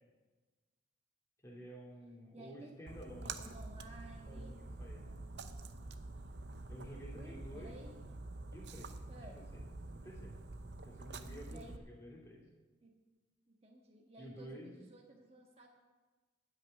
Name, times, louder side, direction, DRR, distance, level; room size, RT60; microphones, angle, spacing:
voice 1, 1.4-3.5 4.3-5.1 6.7-7.7 8.5-9.6 9.9-10.3 10.8-12.4 14.2-14.7, equal, 15° left, -4 dB, 3.0 m, -51 dB
voice 2, 2.3-2.8 3.2-4.6 5.0-5.3 7.1-8.0 9.1-9.4 11.5-11.8 12.8-13.0 13.5-15.7, right 1 dB, 30° right, 0 dB, 1.5 m, -55 dB
Splash splatter, 2.9-11.8, right 2 dB, 60° right, 0.7 m, -47 dB
13.0 x 6.2 x 9.1 m, 1.3 s
head